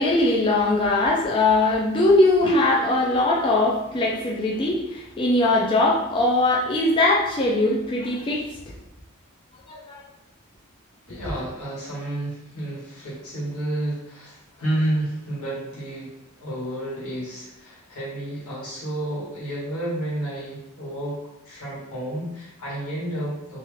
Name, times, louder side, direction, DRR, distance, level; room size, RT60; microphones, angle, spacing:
voice 1, 0.0-8.4 9.7-10.0, left 2 dB, 25° left, -3 dB, 0.4 m, -21 dB
voice 2, 11.1-21.2 21.4-23.6, right 1 dB, 85° left, -7 dB, 1.3 m, -30 dB
2.8 x 2.4 x 3.0 m, 0.89 s
head